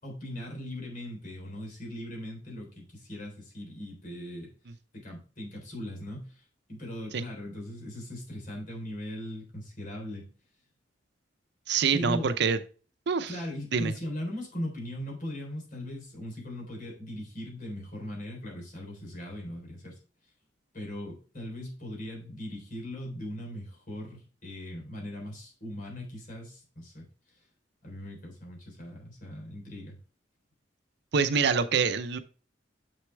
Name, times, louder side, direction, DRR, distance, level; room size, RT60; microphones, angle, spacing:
voice 1, 0.0-4.5 4.9-6.4 6.7-10.3 11.9-12.3 13.3-20.0 20.7-27.1 27.3-27.4 27.8-30.0, left 1 dB, 50° left, -1 dB, 3.8 m, -39 dB
voice 2, 11.7-12.6 13.1-13.3 13.7-13.9 31.1-32.2, right 5 dB, 65° right, 11 dB, 0.6 m, -25 dB
6.9 x 6.5 x 3.4 m, 0.37 s
head